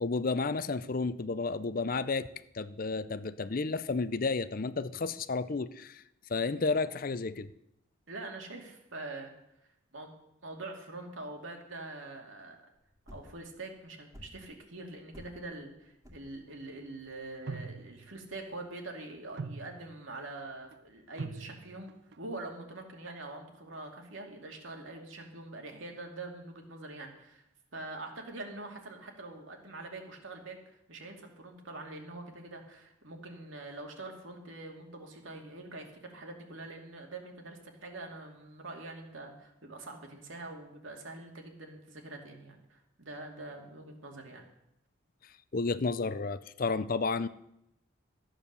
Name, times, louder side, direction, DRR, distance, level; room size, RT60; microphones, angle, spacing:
voice 1, 0.0-2.3 2.5-6.0 6.3-7.5 45.2-47.3, left 4 dB, 45° left, 14 dB, 0.5 m, -32 dB
voice 2, 8.1-9.3 9.9-10.1 10.4-12.6 13.1-21.9 22.2-27.4 27.7-30.6 30.9-44.4, right 2 dB, 70° right, 2 dB, 2.5 m, -44 dB
sound 1, 12.8-18.7, left 1 dB, 15° right, 2.2 m, -54 dB
sound 2, 17.5-18.2 19.1-20.1 20.7-20.8 21.2-22.2, right 4 dB, 50° right, 0.4 m, -42 dB
14.0 x 8.9 x 6.8 m, 0.82 s
head